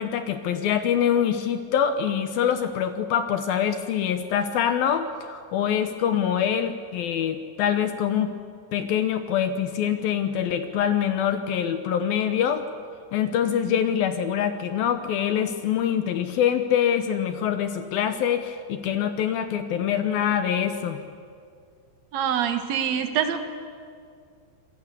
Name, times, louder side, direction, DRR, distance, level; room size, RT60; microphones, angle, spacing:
voice 1, 0.0-8.3 8.7-12.6 13.1-21.0, left 9 dB, 70° left, 9 dB, 2.4 m, -24 dB
voice 2, 22.1-23.4, right 8 dB, 65° right, 7 dB, 1.7 m, -25 dB
27.5 x 20.5 x 8.3 m, 2.2 s
omnidirectional pair, 5.1 m